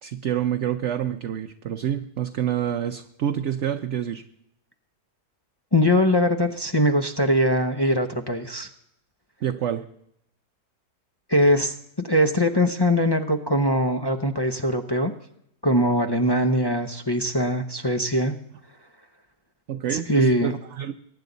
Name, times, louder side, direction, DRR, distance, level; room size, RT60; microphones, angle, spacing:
voice 1, 0.0-4.2 9.4-9.9 19.7-20.9, right 10 dB, 60° right, 6 dB, 0.9 m, -27 dB
voice 2, 5.7-8.7 11.3-15.1 15.6-18.3 19.9-20.5, equal, 25° left, 5 dB, 0.5 m, -22 dB
22.5 x 10.0 x 4.0 m, 0.75 s
omnidirectional pair, 1.7 m